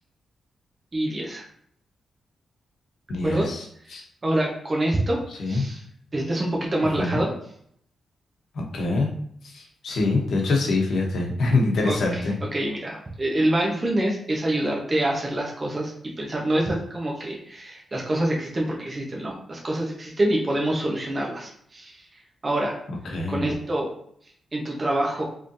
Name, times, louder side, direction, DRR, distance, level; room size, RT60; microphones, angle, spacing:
voice 1, 0.9-1.4 3.2-3.5 4.2-5.2 5.5-5.8 6.1-7.3 11.8-12.2 12.5-15.9 16.2-22.0 22.4-22.7 23.3-23.9 24.5-25.2, right 1 dB, 30° right, -2 dB, 1.0 m, -26 dB
voice 2, 3.1-3.6 3.9-4.0 5.4-5.6 7.0-7.2 8.5-9.1 9.4-12.3 23.0-23.5, left 3 dB, 75° left, 0 dB, 1.0 m, -24 dB
3.9 x 3.3 x 2.6 m, 0.66 s
cardioid pair, 90°, 0 cm